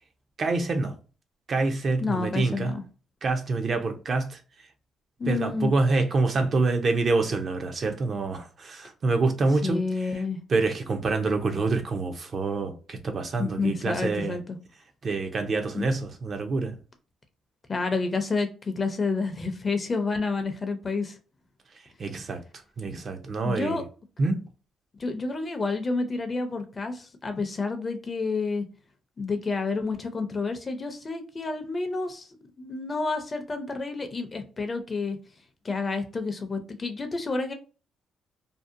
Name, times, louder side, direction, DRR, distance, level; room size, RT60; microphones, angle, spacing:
voice 1, 0.4-1.0 1.5-2.8 3.2-4.4 5.3-9.8 10.5-14.4 15.0-16.8 22.0-22.4 22.8-23.8 24.2-24.4, right 3 dB, 45° right, 0.5 m, -26 dB
voice 2, 2.0-2.8 5.2-5.7 9.6-10.4 13.4-14.6 15.7-15.9 17.7-21.2 23.4-23.8 25.0-28.7 29.2-32.3 32.6-35.2 35.6-37.5, left 3 dB, 30° left, 0.5 m, -29 dB
2.6 x 2.0 x 2.5 m
cardioid pair, 90°, 0 cm